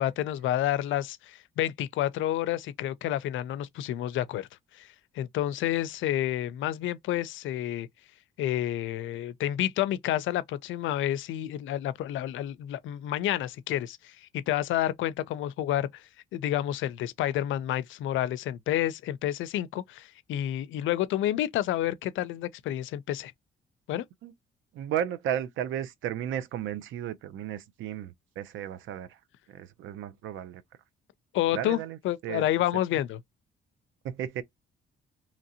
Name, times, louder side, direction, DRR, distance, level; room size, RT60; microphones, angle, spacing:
voice 1, 0.0-4.5 4.7-4.9 5.2-7.9 8.4-16.0 16.3-23.3 23.9-24.0 31.3-31.8 32.0-33.2, left 13 dB, 75° left, 0.4 m, -29 dB
voice 2, 24.7-29.2 29.5-30.6 31.5-32.5 34.0-34.4, right 10 dB, 80° right, 0.5 m, -34 dB
2.8 x 2.6 x 2.8 m
cardioid pair, 90°, 20 cm